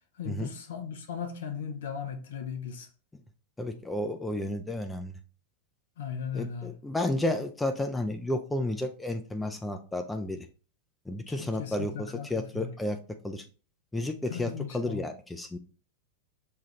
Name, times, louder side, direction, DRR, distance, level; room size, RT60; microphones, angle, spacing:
voice 1, 0.2-2.9 6.0-6.7 11.4-12.7 14.3-15.0, left 7 dB, 60° left, 0.6 m, -37 dB
voice 2, 3.6-5.1 6.3-10.5 11.1-13.0 13.2-13.4 13.9-15.6, left 1 dB, 10° left, 0.4 m, -32 dB
5.5 x 2.4 x 2.9 m
figure-of-eight pair, 90°, 0 cm